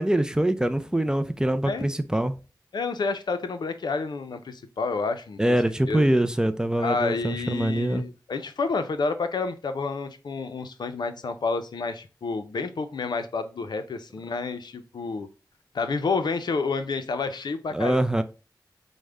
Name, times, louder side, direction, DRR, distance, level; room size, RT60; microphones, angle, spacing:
voice 1, 0.0-2.4 5.4-8.1 17.7-18.2, right 1 dB, 10° right, 0.4 m, -24 dB
voice 2, 2.7-5.4 5.9-6.1 6.8-15.3 15.7-18.0, left 4 dB, 70° left, 0.5 m, -29 dB
4.9 x 2.1 x 3.2 m
cardioid pair, 50°, 8 cm